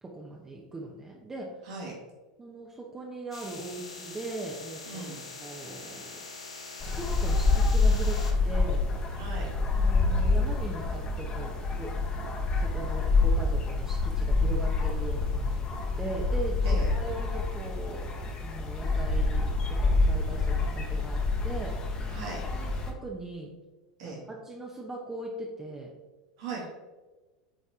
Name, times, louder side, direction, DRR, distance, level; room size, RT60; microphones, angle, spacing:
voice 1, 0.0-1.5 2.4-6.1 6.9-8.8 9.7-11.9 12.5-15.7 16.0-18.1 18.4-21.7 22.5-23.5 24.0-25.9, right 2 dB, 15° right, -1 dB, 1.0 m, -40 dB
sound 1, 3.3-8.3, left 3 dB, 85° left, 1.1 m, -43 dB
voice 2, 4.9-5.2 9.2-9.5 16.6-16.9 22.1-22.4 24.0-24.2 26.4-26.7, right 3 dB, 60° right, -4 dB, 2.2 m, -38 dB
sound 2, 6.8-22.9, left 3 dB, 30° left, 1.4 m, -27 dB
8.6 x 4.1 x 3.6 m, 1.2 s
figure-of-eight pair, 85°, 3 cm